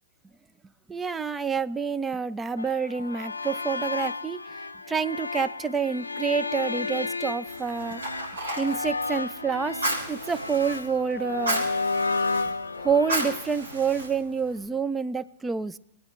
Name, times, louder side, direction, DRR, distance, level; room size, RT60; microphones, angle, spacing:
voice 1, 0.9-4.4 4.9-8.0 8.6-9.8 10.1-11.7 12.5-15.8, right 6 dB, 15° right, 16 dB, 0.4 m, -28 dB
sound 1, 2.6-13.4, left 3 dB, 85° left, 0.5 m, -32 dB
Fire, 7.5-14.6, right 1 dB, 80° right, 4.3 m, -34 dB
22.0 x 9.3 x 3.2 m, 0.83 s
figure-of-eight pair, 110°, 0 cm